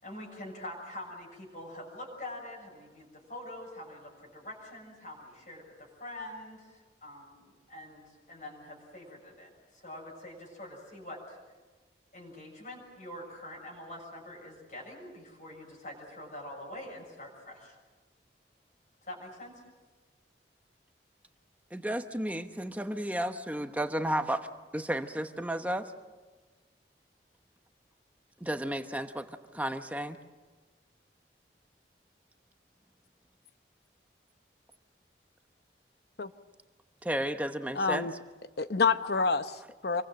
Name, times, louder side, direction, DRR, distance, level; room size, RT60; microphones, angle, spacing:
voice 1, 0.0-11.4 12.1-17.7 19.0-19.6, left 1 dB, 45° left, 6.9 m, -45 dB
voice 2, 21.7-24.4 24.7-25.9 28.4-30.2 37.0-38.1, right 1 dB, 10° right, 1.0 m, -33 dB
voice 3, 37.7-38.1 38.6-40.0, left 4 dB, 65° left, 0.9 m, -28 dB
27.0 x 23.0 x 7.7 m
head